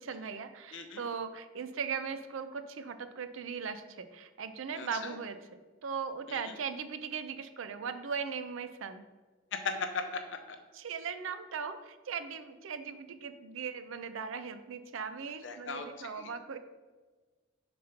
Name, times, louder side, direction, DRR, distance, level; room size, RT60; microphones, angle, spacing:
voice 1, 0.0-9.1 10.7-16.6, right 6 dB, 90° right, 10 dB, 0.5 m, -39 dB
voice 2, 4.7-5.1 6.3-6.5 9.5-10.2 15.4-16.3, left 4 dB, 70° left, 6 dB, 0.6 m, -38 dB
5.0 x 4.2 x 5.7 m, 1.3 s
head